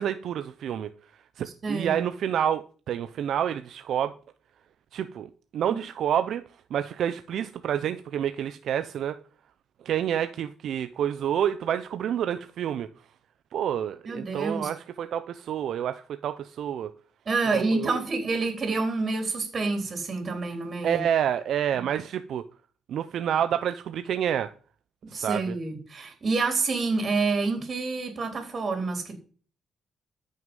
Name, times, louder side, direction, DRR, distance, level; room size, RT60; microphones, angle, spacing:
voice 1, 0.0-4.1 4.9-6.4 6.7-9.2 9.8-12.9 13.5-16.9 17.5-17.9 20.8-22.4 22.9-24.5 25.1-25.6, right 9 dB, 70° right, 0.6 m, -28 dB
voice 2, 1.6-2.0 5.7-5.8 14.1-14.7 17.3-21.0 25.1-29.1, right 3 dB, 40° right, 3.6 m, -28 dB
14.0 x 6.6 x 5.5 m
cardioid pair, 90°, 0 cm